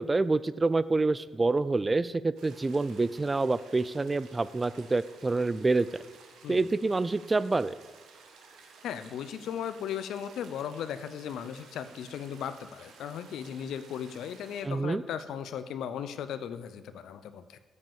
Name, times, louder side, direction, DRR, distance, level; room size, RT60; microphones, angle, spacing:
voice 1, 0.0-5.9 6.5-7.8 14.6-15.0, right 3 dB, 25° right, 17 dB, 0.3 m, -27 dB
sound 1, 2.4-14.6, right 4 dB, 85° right, 1.1 m, -54 dB
voice 2, 8.8-17.6, left 8 dB, 80° left, 12 dB, 0.5 m, -37 dB
7.8 x 5.5 x 7.0 m, 1.3 s
cardioid pair, 75°, 0 cm